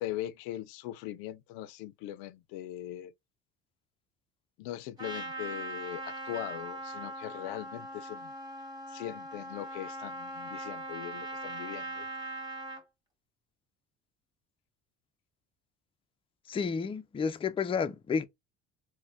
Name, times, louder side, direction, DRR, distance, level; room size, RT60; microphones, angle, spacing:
voice 1, 0.0-3.1 4.6-8.3 8.9-12.1, left 13 dB, 85° left, 0.5 m, -40 dB
Trumpet, 5.0-12.8, right 2 dB, 10° right, 1.7 m, -40 dB
voice 2, 16.5-18.3, left 5 dB, 15° left, 0.4 m, -31 dB
4.2 x 2.2 x 2.6 m
supercardioid pair, 90°, 33 cm